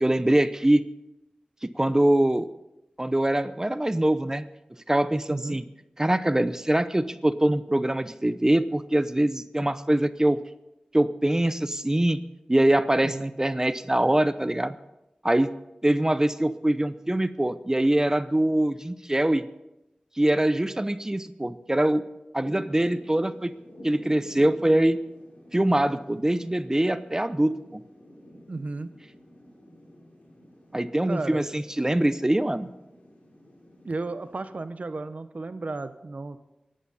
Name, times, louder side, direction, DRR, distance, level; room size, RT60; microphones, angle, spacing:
voice 1, 0.0-0.8 1.6-2.5 3.0-4.4 4.9-5.6 6.0-10.4 10.9-12.2 12.5-14.8 15.2-15.5 15.8-19.4 20.2-22.0 22.3-23.5 23.8-25.0 25.5-27.8 30.7-32.7, right 1 dB, 20° right, 13 dB, 0.7 m, -23 dB
voice 2, 5.3-5.6 13.0-13.2 28.5-28.9 31.0-31.5 33.8-36.4, right 3 dB, 65° right, 11 dB, 0.9 m, -34 dB
Thunder / Rain, 22.4-34.6, left 1 dB, 75° left, 6.0 m, -49 dB
23.5 x 11.0 x 4.2 m, 0.94 s
wide cardioid pair, 50°, 3 cm